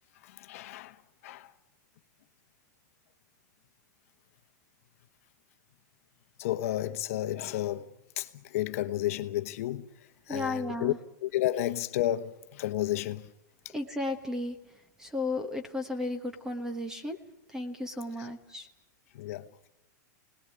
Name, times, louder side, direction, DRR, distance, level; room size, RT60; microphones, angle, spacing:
voice 1, 0.2-1.0 1.2-1.5 6.4-7.9 8.2-9.9 10.3-10.9 11.2-13.3 13.6-13.7 18.2-18.3 19.1-19.7, left 14 dB, 50° left, 1.1 m, -32 dB
voice 2, 10.3-11.0 13.7-14.6 15.0-17.2 17.5-18.7, left 2 dB, 5° right, 1.2 m, -34 dB
26.5 x 19.5 x 9.9 m
supercardioid pair, 170°, 10 cm